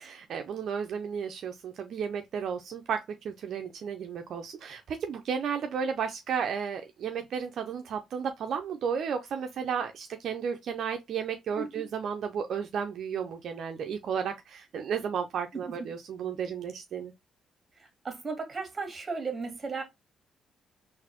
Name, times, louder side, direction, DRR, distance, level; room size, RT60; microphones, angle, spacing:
voice 1, 0.0-17.1, right 7 dB, 65° right, 0.4 m, -33 dB
voice 2, 18.0-19.8, right 4 dB, 30° right, 1.6 m, -35 dB
4.0 x 2.5 x 2.8 m
cardioid pair, 90°, 0 cm